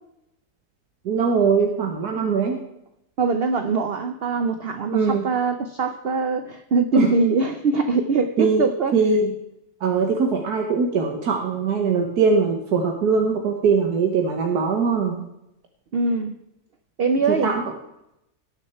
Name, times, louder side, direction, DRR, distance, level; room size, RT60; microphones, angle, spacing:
voice 1, 1.0-2.6 4.9-5.3 6.9-7.1 8.4-8.7 8.9-9.3 9.8-15.3 17.3-17.6, right 5 dB, 75° right, 2 dB, 1.7 m, -21 dB
voice 2, 3.2-9.0 15.9-16.4 17.0-17.5, right 4 dB, 55° right, 8 dB, 0.7 m, -22 dB
18.5 x 6.6 x 4.4 m, 0.83 s
omnidirectional pair, 1.7 m